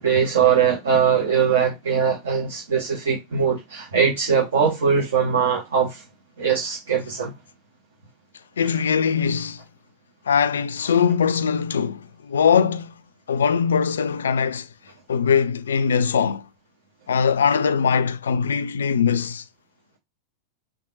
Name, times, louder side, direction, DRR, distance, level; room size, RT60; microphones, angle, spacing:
voice 1, 0.0-6.0 6.4-7.3, right 7 dB, 60° right, 1.1 m, -21 dB
voice 2, 8.6-9.6 10.3-12.9 13.3-14.7 15.1-16.4 17.1-19.4, left 6 dB, 65° left, 0.3 m, -21 dB
3.5 x 2.5 x 3.9 m
figure-of-eight pair, 90°, 0 cm